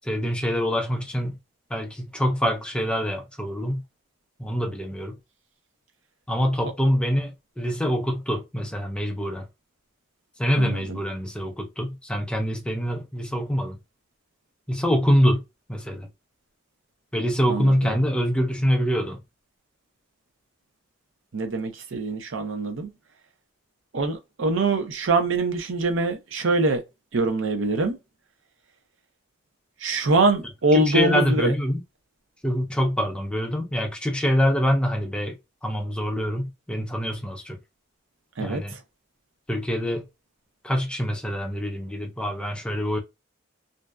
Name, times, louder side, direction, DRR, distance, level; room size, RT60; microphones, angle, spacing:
voice 1, 0.0-1.4 1.7-3.8 4.4-5.1 6.3-9.5 10.4-13.8 14.7-15.4 15.7-16.1 17.1-19.2 30.7-31.8 32.4-37.6 38.4-38.8 39.5-40.1 40.6-43.0, equal, 5° left, 0.4 m, -25 dB
voice 2, 10.6-11.0 17.5-18.0 21.3-22.9 23.9-26.8 27.1-28.0 29.8-31.5 38.4-38.6, right 2 dB, 75° right, 0.6 m, -24 dB
2.5 x 2.2 x 2.3 m
head